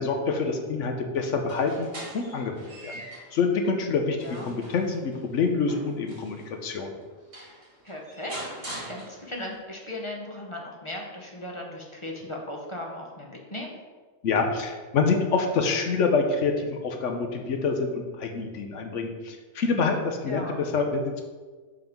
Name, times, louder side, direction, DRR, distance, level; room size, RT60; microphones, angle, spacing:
voice 1, 0.0-1.9 2.1-3.0 3.3-7.0 14.2-21.2, left 4 dB, 70° left, 4 dB, 1.1 m, -26 dB
sound 1, 1.3-3.4 3.9-6.5 7.0-7.1 7.3-9.5, right 1 dB, 45° right, 2.2 m, -43 dB
voice 2, 4.2-4.5 7.8-13.7 20.3-20.6, left 1 dB, 30° left, -1 dB, 0.7 m, -37 dB
5.4 x 3.7 x 5.8 m, 1.4 s
omnidirectional pair, 1.4 m